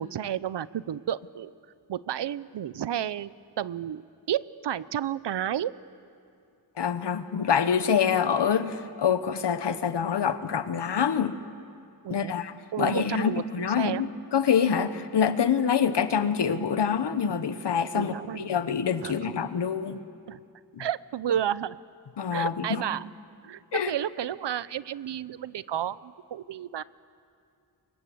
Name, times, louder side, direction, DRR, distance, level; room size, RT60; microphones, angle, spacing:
voice 1, 0.0-1.5 1.9-5.7 12.0-12.4 12.7-14.0 17.9-18.5 19.0-19.4 20.3-20.4 20.8-21.8 22.3-23.1 23.4-26.8, right 10 dB, 85° right, 18 dB, 0.7 m, -32 dB
voice 2, 6.8-11.4 12.1-20.0 20.7-20.9 22.2-22.8 23.7-23.9, left 7 dB, 80° left, 11 dB, 1.2 m, -26 dB
29.0 x 24.5 x 7.8 m, 2.5 s
wide cardioid pair, 150°, 41 cm